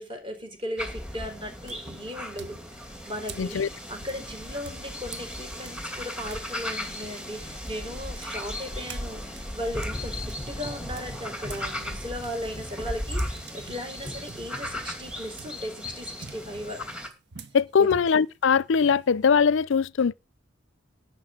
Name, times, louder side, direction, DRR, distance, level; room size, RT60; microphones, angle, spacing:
voice 1, 0.0-16.8 17.8-18.0, equal, 25° right, 4.6 m, -37 dB
sound 1, 0.7-1.1 1.6-6.5 6.8-11.7 12.0-19.4, right 5 dB, 60° right, 1.1 m, -47 dB
sound 2, 0.8-17.1, left 1 dB, 5° right, 2.4 m, -36 dB
voice 2, 3.4-3.7 17.5-20.1, left 6 dB, 65° left, 0.5 m, -21 dB
sound 3, 9.7-15.2, left 1 dB, 10° left, 1.4 m, -43 dB
11.5 x 5.8 x 7.4 m
head